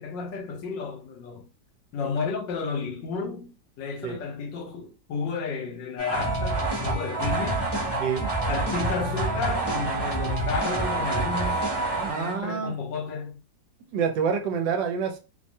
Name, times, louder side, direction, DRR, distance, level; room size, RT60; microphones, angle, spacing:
voice 1, 0.0-1.4 1.9-7.7 8.5-11.6 12.1-13.4, left 5 dB, 75° left, 1.4 m, -32 dB
sound 1, 6.0-12.5, right 2 dB, 40° left, 0.3 m, -27 dB
voice 2, 11.9-12.7 13.9-15.2, right 6 dB, 75° right, 1.2 m, -27 dB
3.1 x 2.2 x 2.6 m
omnidirectional pair, 2.1 m